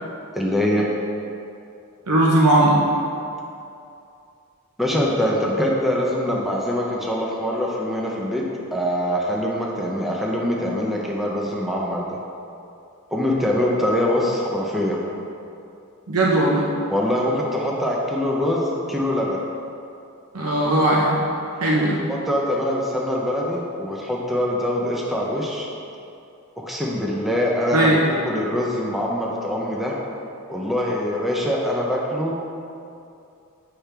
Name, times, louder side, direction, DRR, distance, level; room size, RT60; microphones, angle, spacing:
voice 1, 0.3-0.9 4.8-8.4 8.7-12.2 13.1-15.0 16.9-19.4 21.8-25.7 26.6-28.0 28.2-30.0 30.5-32.4, left 1 dB, ahead, -3 dB, 0.6 m, -23 dB
voice 2, 2.1-2.8 16.1-16.7 20.3-21.2 21.6-22.0 27.7-28.0, right 1 dB, 80° right, -4 dB, 0.9 m, -18 dB
8.2 x 5.9 x 3.4 m, 2.6 s
head